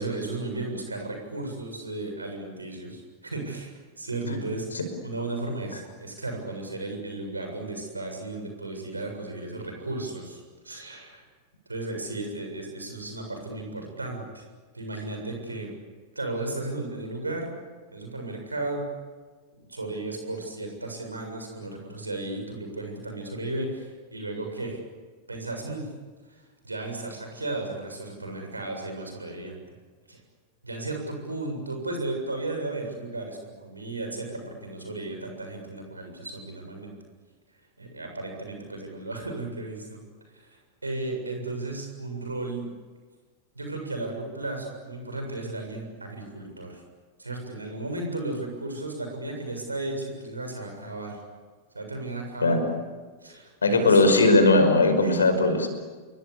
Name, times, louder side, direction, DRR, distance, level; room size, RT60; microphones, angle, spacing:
voice 1, 0.0-11.2 11.7-14.4 14.7-15.7 16.2-17.5 17.9-18.9 19.7-24.8 25.3-25.9 26.3-29.6 30.1-30.2 30.6-36.9 37.8-40.0 40.3-40.6 40.8-42.7 43.5-46.8 47.2-51.2 51.7-52.6 53.2-54.0 55.0-55.1, right 2 dB, 80° right, 3 dB, 7.2 m, -34 dB
voice 2, 53.6-55.7, left 2 dB, 75° left, 7 dB, 5.5 m, -19 dB
29.0 x 23.0 x 8.5 m, 1.4 s
figure-of-eight pair, 90°, 0 cm